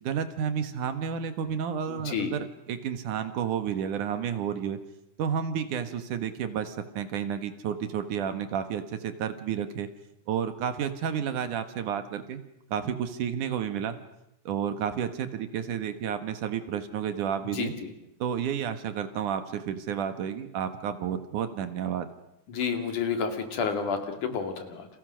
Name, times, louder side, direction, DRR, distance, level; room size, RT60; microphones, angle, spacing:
voice 1, 0.0-4.8 5.2-9.9 10.3-12.4 12.7-14.0 14.5-17.7 18.2-22.1, right 8 dB, 75° right, 9 dB, 3.1 m, -31 dB
voice 2, 1.9-2.3 17.5-17.9 22.5-24.9, left 6 dB, 75° left, 5 dB, 4.1 m, -30 dB
30.0 x 28.5 x 6.4 m, 0.84 s
omnidirectional pair, 3.6 m